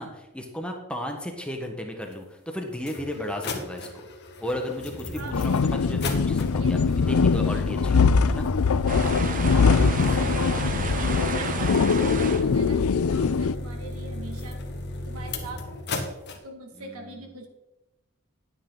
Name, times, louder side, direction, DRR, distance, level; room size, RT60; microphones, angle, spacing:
voice 1, 0.0-4.1 4.4-8.5 16.8-17.2, left 1 dB, 5° left, 2 dB, 1.3 m, -34 dB
sound 1, 2.1-2.2 2.8-16.4, left 2 dB, 50° left, 1.5 m, -34 dB
voice 2, 5.1-5.5 6.6-6.9 9.3-14.6 15.1-15.8 16.4-17.5, right 2 dB, 85° right, 3 dB, 2.1 m, -42 dB
sound 2, 5.3-13.6, left 5 dB, 85° left, 0.5 m, -22 dB
sound 3, 8.9-12.4, right 3 dB, 40° right, 1.0 m, -31 dB
11.5 x 9.5 x 3.9 m, 0.97 s
head